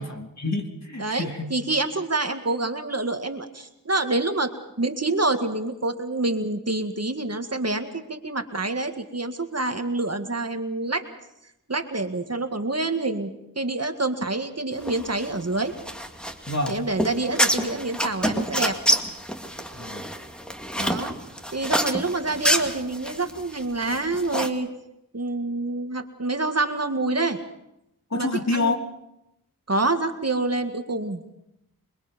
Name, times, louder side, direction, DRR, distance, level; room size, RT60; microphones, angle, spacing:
voice 1, 0.0-1.5 16.5-16.8 19.7-20.1 28.1-28.8, left 2 dB, 45° left, 2 dB, 3.2 m, -27 dB
voice 2, 1.0-4.5 4.8-11.0 11.7-15.7 16.7-18.8 20.8-21.1 21.5-24.7 25.1-27.4 28.1-28.7 29.7-31.4, right 2 dB, 40° right, 6 dB, 2.0 m, -27 dB
sound 1, 14.8-24.5, equal, ahead, 2.3 m, -27 dB
26.5 x 22.0 x 5.3 m, 0.85 s
wide cardioid pair, 45°, 37 cm